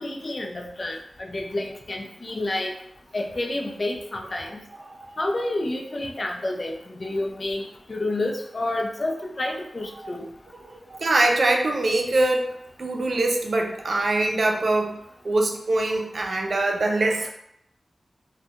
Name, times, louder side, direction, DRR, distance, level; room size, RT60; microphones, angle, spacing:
voice 1, 0.0-2.7 3.1-4.6 5.2-10.3, left 2 dB, 45° left, 2 dB, 0.4 m, -29 dB
voice 2, 10.9-12.5 12.8-17.3, right 2 dB, 60° right, 2 dB, 0.4 m, -23 dB
2.3 x 2.2 x 2.7 m, 0.76 s
wide cardioid pair, 70°, 0 cm